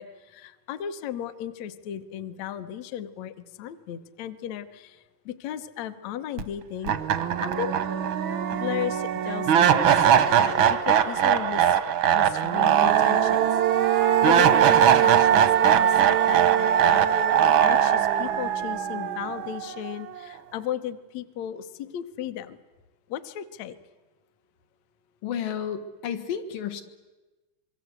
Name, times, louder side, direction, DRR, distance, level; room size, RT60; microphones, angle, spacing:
voice 1, 0.0-5.0 5.3-7.7 8.5-11.8 12.1-13.4 13.8-16.0 16.3-17.0 17.6-22.6 23.1-23.8, left 10 dB, 70° left, 10 dB, 1.9 m, -35 dB
sound 1, 6.4-6.5 6.9-19.9, right 9 dB, 75° right, 1.1 m, -21 dB
voice 2, 25.2-26.8, left 8 dB, 85° left, 7 dB, 3.2 m, -31 dB
26.0 x 22.5 x 8.0 m, 1.2 s
omnidirectional pair, 3.8 m